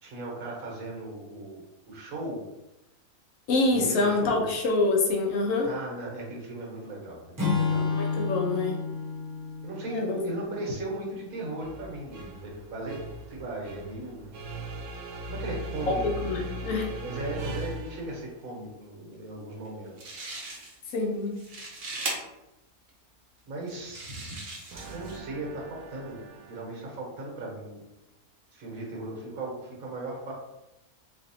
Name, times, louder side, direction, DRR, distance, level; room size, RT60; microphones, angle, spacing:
voice 1, 0.0-1.6 1.9-2.4 3.7-4.5 5.6-7.9 8.1-8.2 9.6-13.0 13.3-14.2 15.3-16.3 17.0-20.2 23.5-26.2 26.5-27.8 28.5-30.3, right 2 dB, 65° right, -2 dB, 1.4 m, -37 dB
voice 2, 3.5-5.7 7.7-8.7 9.9-10.2 16.2-16.9 20.9-21.4, left 3 dB, 70° left, 1 dB, 1.0 m, -26 dB
Acoustic guitar / Strum, 7.4-10.9, left 4 dB, 25° right, 0.4 m, -30 dB
sound 1, 11.6-18.2 24.7-26.6, right 1 dB, 90° right, 1.1 m, -39 dB
sound 2, 19.7-19.8 20.0-20.9 21.3-22.1 22.9-23.0 23.7-25.2, right 2 dB, 50° right, 0.9 m, -38 dB
4.2 x 2.7 x 2.7 m, 0.94 s
omnidirectional pair, 1.6 m